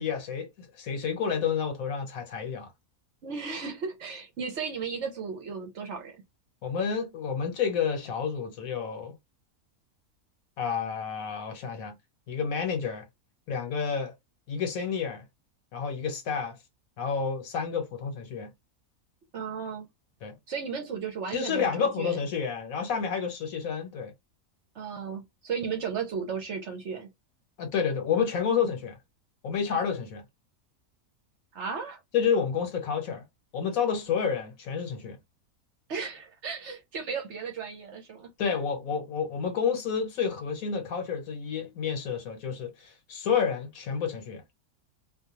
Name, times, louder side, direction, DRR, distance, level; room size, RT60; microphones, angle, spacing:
voice 1, 0.0-2.7 6.6-9.1 10.6-12.0 12.3-13.0 13.5-14.1 14.5-15.2 15.7-16.6 17.0-18.5 20.2-20.3 21.3-24.1 27.6-28.9 29.4-30.2 32.1-33.2 33.5-35.2 38.4-44.4, left 6 dB, 70° left, 1.3 m, -29 dB
voice 2, 3.2-6.2 19.3-19.9 20.5-22.2 24.7-27.1 31.5-32.0 35.9-38.3, right 6 dB, 60° right, 0.9 m, -35 dB
2.5 x 2.3 x 2.9 m
omnidirectional pair, 1.5 m